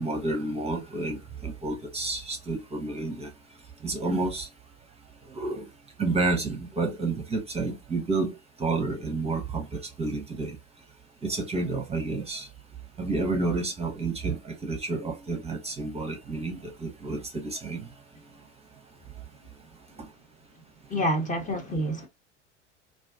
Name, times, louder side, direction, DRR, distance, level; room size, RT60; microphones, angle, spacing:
voice 1, 0.0-3.3 3.8-4.5 5.3-5.7 6.0-10.6 11.2-12.5 13.0-17.9, right 3 dB, 15° right, 0.7 m, -30 dB
voice 2, 20.9-22.1, equal, 20° left, 0.7 m, -27 dB
2.5 x 2.3 x 2.2 m
hypercardioid pair, 75°, 37 cm